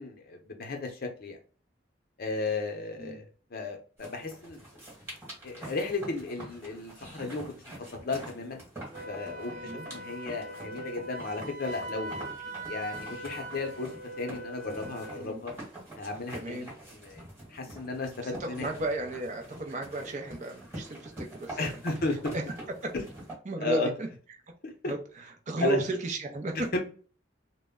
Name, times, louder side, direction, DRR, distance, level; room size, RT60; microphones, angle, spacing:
voice 1, 0.0-1.4 2.2-3.3 3.5-4.6 5.4-7.5 8.0-8.6 9.1-12.3 12.7-13.9 14.2-15.5 16.0-17.2 17.5-18.7 21.6-22.3 23.6-23.9 24.6-24.7 25.6-25.8 26.7-26.8, left 3 dB, 55° left, 4 dB, 0.6 m, -34 dB
sound 1, 4.0-23.3, right 1 dB, 15° right, 1.3 m, -46 dB
Wind instrument woodwind instrument, 8.9-15.3, right 1 dB, 75° right, 0.8 m, -41 dB
voice 2, 9.5-9.9 15.2-15.4 16.3-16.7 17.7-17.8 18.2-21.8 22.3-22.4 22.8-22.9 23.5-24.1 24.9-26.5, right 2 dB, 40° right, 2 dB, 0.5 m, -34 dB
2.1 x 2.1 x 3.5 m, 0.40 s
head